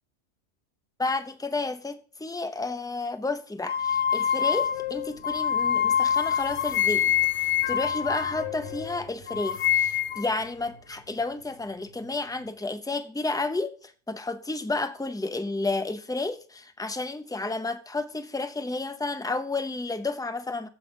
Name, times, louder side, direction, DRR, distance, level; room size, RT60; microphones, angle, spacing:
voice 1, 1.0-7.1 7.4-20.7, left 3 dB, 5° left, 0.4 m, -31 dB
sound 1, 3.7-12.6, left 2 dB, 85° left, 2.0 m, -49 dB
sound 2, 3.7-9.0 9.3-10.3, left 9 dB, 65° left, 0.9 m, -26 dB
15.0 x 5.5 x 5.2 m
omnidirectional pair, 1.4 m